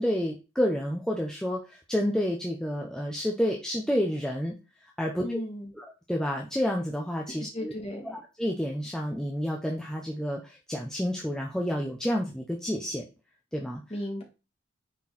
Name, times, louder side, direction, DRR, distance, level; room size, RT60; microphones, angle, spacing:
voice 1, 0.0-4.5 5.0-5.4 5.8-7.7 8.4-13.0 13.5-13.8, equal, 5° left, -1 dB, 0.9 m, -29 dB
voice 2, 5.2-5.7 7.3-8.1 13.9-14.2, left 1 dB, 25° left, 1 dB, 2.3 m, -35 dB
9.7 x 4.6 x 4.3 m, 0.29 s
head